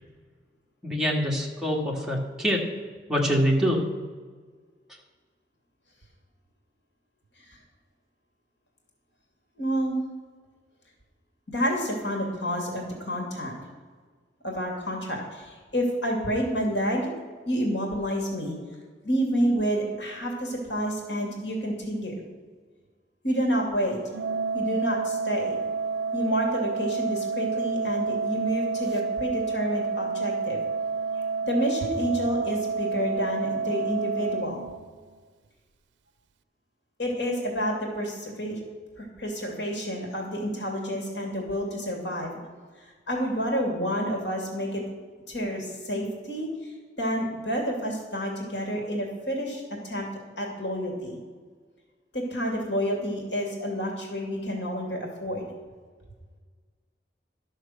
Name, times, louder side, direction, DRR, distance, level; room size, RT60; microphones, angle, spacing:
voice 1, 0.8-2.6 3.1-3.8, equal, 5° right, -2 dB, 1.7 m, -24 dB
voice 2, 9.6-10.0 11.5-13.5 14.4-17.1 17.5-18.6 19.0-22.1 23.2-24.0 24.5-25.6 26.1-30.6 31.4-34.6 37.0-38.6 39.0-42.3 43.1-44.8 45.3-46.7 47.0-50.1 50.4-51.2 52.1-55.5, equal, 80° left, 1 dB, 2.5 m, -29 dB
Organ, 24.1-35.2, right 4 dB, 90° right, 0.4 m, -29 dB
12.0 x 6.5 x 6.4 m, 1.5 s
head